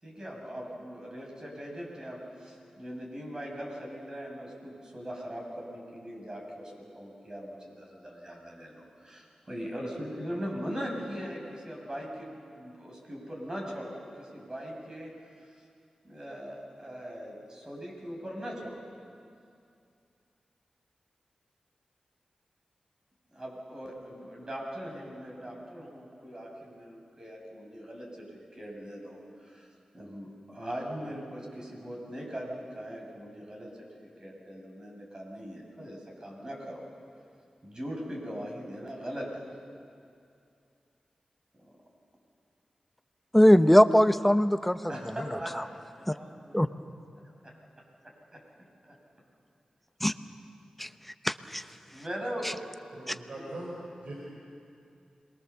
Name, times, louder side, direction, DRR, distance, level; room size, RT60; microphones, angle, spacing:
voice 1, 0.0-15.1 16.0-18.8 23.3-33.9 34.2-36.8 37.6-39.4 41.6-41.7 44.9-46.6 47.4-47.5 51.9-52.6, equal, 35° right, -1 dB, 6.7 m, -40 dB
voice 2, 43.3-44.8 46.5-46.7 50.0-50.1 50.8-50.9 51.2-51.6 53.1-53.2, equal, 5° left, 10 dB, 0.9 m, -20 dB
voice 3, 52.9-53.8 54.0-54.1, right 1 dB, 70° right, -4 dB, 5.3 m, -40 dB
27.0 x 22.0 x 7.0 m, 2.4 s
cardioid pair, 60°, 2 cm